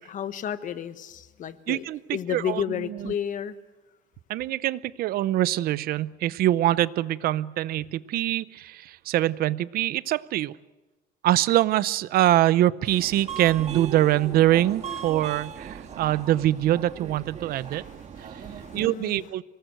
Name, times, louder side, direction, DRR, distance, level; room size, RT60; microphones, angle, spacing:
voice 1, 0.0-1.8 2.1-3.5 17.7-19.3, left 9 dB, 55° left, 11 dB, 1.4 m, -32 dB
voice 2, 1.7-3.1 4.3-10.5 11.2-17.8 18.2-18.4 18.7-19.4, right 14 dB, 70° right, 18 dB, 0.7 m, -24 dB
Subway metro underground, 12.8-18.9, right 7 dB, 45° right, 1.7 m, -38 dB
25.0 x 19.5 x 7.9 m, 1.1 s
cardioid pair, 130°, 16 cm